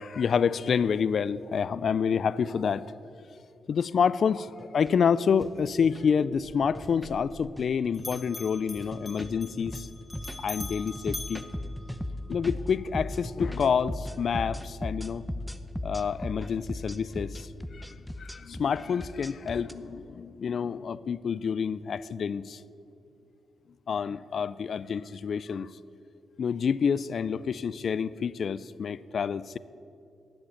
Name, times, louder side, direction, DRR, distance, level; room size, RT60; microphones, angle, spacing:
voice 1, 0.0-2.9 3.7-9.9 10.4-11.4 12.3-15.2 15.8-22.6 23.9-25.7 26.4-29.6, left 6 dB, 65° left, 18 dB, 0.3 m, -28 dB
sound 1, 3.7-3.8 4.5-4.9 5.3-5.5 5.8-6.0 6.6-7.1 7.4-7.7 8.0-8.4 8.7-19.7, left 1 dB, ahead, 0.7 m, -37 dB
sound 2, 4.8-5.0 5.4-5.5 6.8-7.0 8.8-8.9 10.2-10.6 11.0-11.2, equal, 15° right, 2.8 m, -52 dB
Bell, 6.3-7.7 7.9-12.4, left 2 dB, 25° left, 1.9 m, -44 dB
11.0 x 7.6 x 7.1 m, 2.6 s
supercardioid pair, 60°, 0 cm